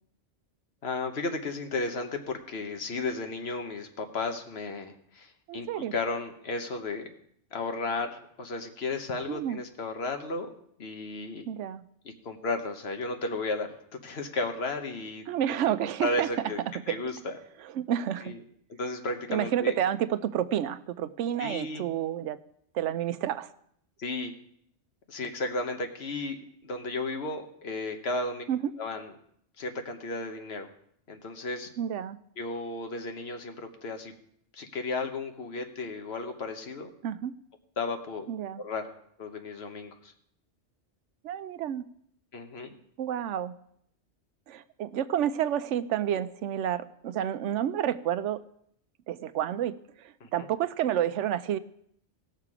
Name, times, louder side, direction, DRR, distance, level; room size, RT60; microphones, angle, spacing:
voice 1, 0.8-7.1 7.5-10.5 10.8-11.5 12.0-15.2 15.8-16.6 16.9-17.4 18.2-18.4 18.8-19.8 21.4-21.9 24.0-24.3 25.1-26.4 26.6-28.4 28.8-29.1 29.6-30.7 31.1-31.7 32.4-34.1 34.5-36.9 37.8-38.2 38.6-38.8 39.2-40.1 42.3-42.7 50.2-50.3, left 3 dB, 65° left, 6 dB, 1.3 m, -34 dB
voice 2, 5.5-5.9 9.3-9.6 11.5-11.8 15.3-16.3 16.7-17.0 17.6-18.3 19.3-22.4 22.7-23.5 28.5-28.7 31.8-32.2 37.0-37.3 38.3-38.6 41.2-41.9 43.0-43.6 44.5-48.4 49.1-51.6, right 10 dB, 85° right, 13 dB, 0.9 m, -30 dB
17.0 x 6.6 x 4.9 m, 0.69 s
omnidirectional pair, 1.2 m